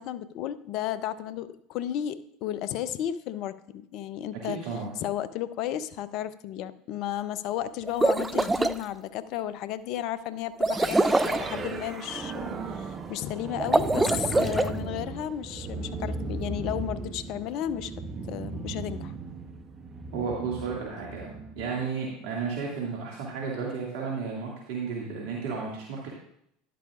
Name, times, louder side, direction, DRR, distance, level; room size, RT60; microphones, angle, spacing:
voice 1, 0.0-4.6 5.0-17.9 18.3-19.1, left 11 dB, 55° left, 15 dB, 0.6 m, -33 dB
voice 2, 4.4-4.9 20.1-26.1, right 5 dB, 65° right, -3 dB, 2.1 m, -33 dB
sound 1, 7.8-8.8 10.6-11.5 13.6-14.7, right 2 dB, 10° right, 0.5 m, -24 dB
sound 2, 10.6-21.8, right 4 dB, 30° right, 1.1 m, -36 dB
11.5 x 11.0 x 2.5 m, 0.73 s
hypercardioid pair, 80°, 0 cm